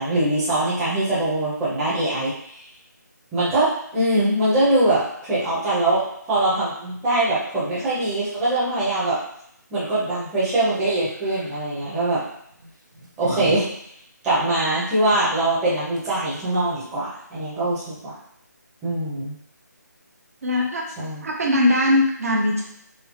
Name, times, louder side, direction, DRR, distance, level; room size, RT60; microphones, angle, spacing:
voice 1, 0.0-2.5 3.3-9.2 9.7-12.2 13.2-13.7 14.2-18.1 18.8-19.3 21.0-21.2, right 1 dB, 5° right, -11 dB, 0.7 m, -22 dB
sound 1, 11.1-11.6 12.5-13.6 13.9-14.0 15.7-15.8 15.9-16.4, right 2 dB, 85° right, 0.8 m, -35 dB
voice 2, 20.4-20.9 21.2-22.6, left 1 dB, 50° right, -1 dB, 0.7 m, -20 dB
4.3 x 2.0 x 2.8 m, 0.71 s
figure-of-eight pair, 170°, 10 cm